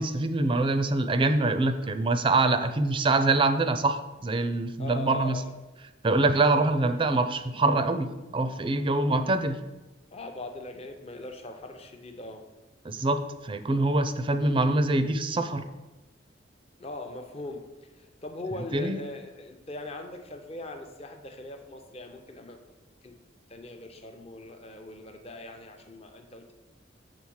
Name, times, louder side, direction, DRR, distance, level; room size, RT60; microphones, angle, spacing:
voice 1, 0.0-5.4 6.0-9.6 12.8-15.6 18.7-19.0, right 2 dB, 25° right, 9 dB, 0.4 m, -25 dB
voice 2, 4.8-5.5 10.1-12.4 16.8-17.6 17.9-22.6 23.0-23.1 23.5-26.5, left 2 dB, 35° left, 4 dB, 0.7 m, -40 dB
7.1 x 3.8 x 6.4 m, 1.1 s
head